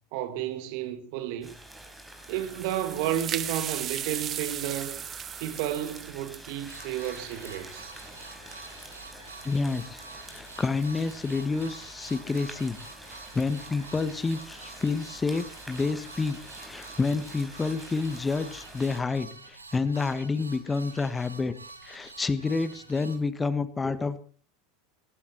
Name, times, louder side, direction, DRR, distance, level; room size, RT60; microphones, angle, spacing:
voice 1, 0.1-1.6 2.3-5.0 5.4-7.9, right 11 dB, 55° right, 2.2 m, -32 dB
sound 1, 1.4-19.0, right 1 dB, 5° right, 5.3 m, -47 dB
sound 2, 2.3-7.8, right 10 dB, 35° right, 0.9 m, -37 dB
sound 3, 6.7-23.2, right 3 dB, 85° right, 2.2 m, -47 dB
voice 2, 9.4-10.0 10.3-12.8 13.1-21.5 21.8-24.2, left 4 dB, 15° left, 1.4 m, -29 dB
19.0 x 16.0 x 4.5 m
figure-of-eight pair, 80°, 0 cm